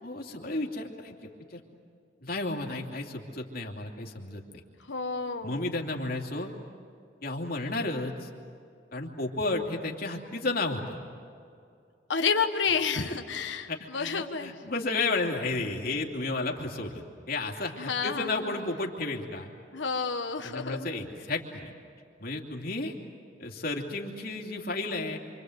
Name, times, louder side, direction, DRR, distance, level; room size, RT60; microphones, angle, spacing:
voice 1, 0.0-1.6 2.2-4.6 5.4-6.5 7.2-8.3 8.9-11.0 13.7-19.5 20.4-21.7 22.2-22.9 23.4-25.2, left 2 dB, 55° left, 1 dB, 2.9 m, -32 dB
voice 2, 4.9-5.6 12.1-14.5 17.8-18.6 19.7-20.9, left 5 dB, 85° left, 5 dB, 1.4 m, -30 dB
27.5 x 26.0 x 8.1 m, 2.4 s
head